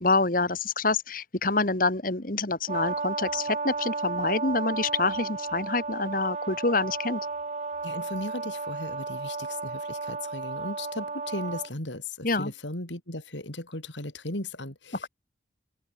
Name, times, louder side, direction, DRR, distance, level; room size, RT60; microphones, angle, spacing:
voice 1, 0.0-7.3 12.2-12.5 15.0-15.1, left 3 dB, 50° left, 2.3 m, -27 dB
Brass instrument, 2.7-11.7, right 3 dB, 40° right, 1.1 m, -33 dB
voice 2, 7.8-15.1, left 2 dB, 90° left, 6.5 m, -36 dB
open air
head